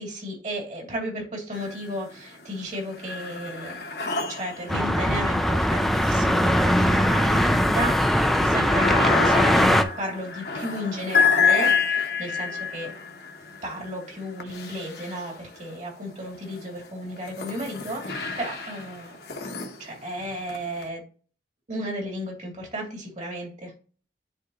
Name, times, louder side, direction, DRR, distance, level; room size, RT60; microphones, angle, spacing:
voice 1, 0.0-3.9 4.3-12.9 13.6-19.2 19.8-21.0 21.7-23.7, equal, 40° right, -1 dB, 2.8 m, -33 dB
sound 1, 1.5-2.2 2.6-15.7 16.4-20.8, left 5 dB, 60° left, 1.2 m, -29 dB
sound 2, 4.7-9.8, equal, ahead, 0.4 m, -21 dB
9.7 x 3.6 x 3.0 m, 0.39 s
head